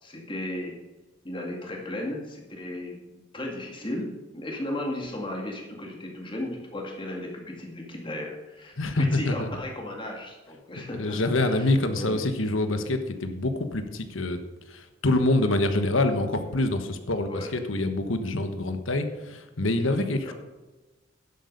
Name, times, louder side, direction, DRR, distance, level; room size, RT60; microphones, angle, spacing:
voice 1, 0.0-0.8 1.2-3.0 3.3-12.3 17.3-17.5 20.3-20.4, left 1 dB, 25° left, 0 dB, 2.1 m, -35 dB
voice 2, 8.8-9.5 10.8-14.4 14.7-20.3, left 2 dB, 90° left, 8 dB, 1.3 m, -26 dB
11.0 x 8.0 x 5.4 m, 1.1 s
head